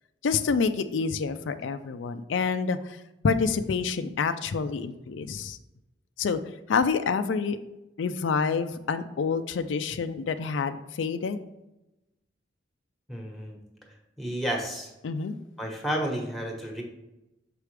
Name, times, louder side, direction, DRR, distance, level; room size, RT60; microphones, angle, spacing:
voice 1, 0.2-3.0 3.2-5.6 6.2-6.4 6.7-7.6 8.0-11.4 15.0-15.3, left 5 dB, 90° left, 10 dB, 0.4 m, -27 dB
voice 2, 13.1-13.6 14.2-14.9 15.6-16.8, equal, ahead, 0 dB, 1.1 m, -31 dB
6.7 x 4.9 x 3.3 m, 0.96 s
head